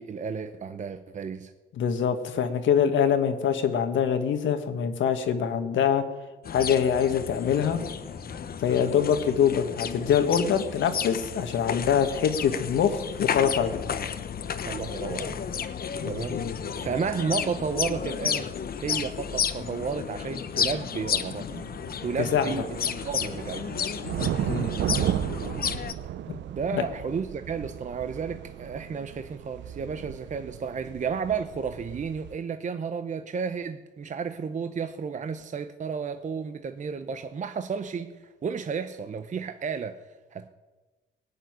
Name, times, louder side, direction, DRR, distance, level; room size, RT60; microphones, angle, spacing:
voice 1, 0.0-1.5 14.6-15.7 16.0-18.5 18.8-21.7 22.0-22.8 23.0-23.8 25.7-26.0 26.5-40.5, right 6 dB, 40° right, 9 dB, 0.8 m, -32 dB
voice 2, 1.8-6.0 6.5-7.8 8.6-13.8 16.0-16.6 22.3-22.5 24.2-24.7 26.3-26.4 26.7-26.8, left 8 dB, 75° left, 8 dB, 1.7 m, -24 dB
sound 1, 6.4-25.9, left 7 dB, 50° left, 1.0 m, -32 dB
sound 2, 21.5-32.3, right 11 dB, 65° right, 0.6 m, -34 dB
18.5 x 6.7 x 9.5 m, 1.2 s
cardioid pair, 90°, 20 cm